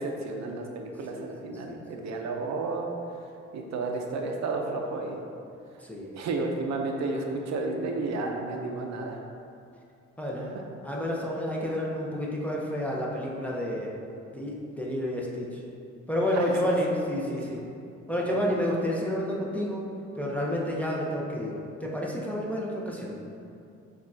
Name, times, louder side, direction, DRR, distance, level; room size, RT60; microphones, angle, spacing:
voice 1, 0.0-2.9 3.5-5.2 6.1-9.2 10.4-10.5 16.3-16.7 17.3-17.6 18.2-18.5, right 3 dB, 65° right, 2 dB, 0.5 m, -32 dB
voice 2, 1.1-1.8 5.8-6.1 10.2-10.5 10.8-13.9 14.3-15.5 16.1-17.6 18.1-19.9 20.2-23.2, equal, 5° left, -4 dB, 0.6 m, -30 dB
7.0 x 2.4 x 2.6 m, 2.6 s
cardioid pair, 90°, 30 cm